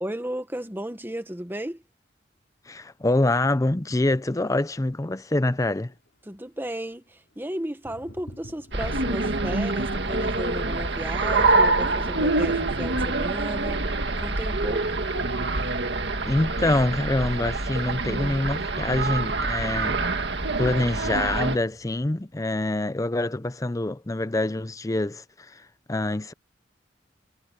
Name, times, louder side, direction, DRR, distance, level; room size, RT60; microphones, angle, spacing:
voice 1, 0.0-1.8 6.2-13.8 14.2-14.9, right 1 dB, 10° right, 1.5 m, -34 dB
voice 2, 2.7-5.9 16.3-20.0 20.6-25.6 25.9-26.3, left 2 dB, 20° left, 0.6 m, -25 dB
Thunder, 5.9-6.8 7.1-22.3, equal, 90° left, 4.2 m, -49 dB
sound 1, 8.7-21.6, right 3 dB, 65° right, 2.0 m, -25 dB
head